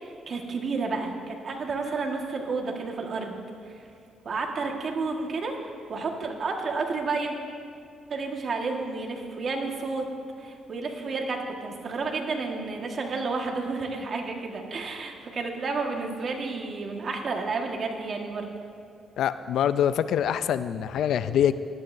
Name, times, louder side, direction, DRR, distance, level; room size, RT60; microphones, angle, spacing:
voice 1, 0.0-3.4 3.7-3.9 4.2-7.4 8.1-10.1 10.4-18.5, right 4 dB, 50° right, 2 dB, 1.6 m, -31 dB
voice 2, 19.2-21.5, left 9 dB, 75° left, 13 dB, 0.4 m, -24 dB
18.5 x 12.0 x 2.7 m, 2.5 s
cardioid pair, 90°, 0 cm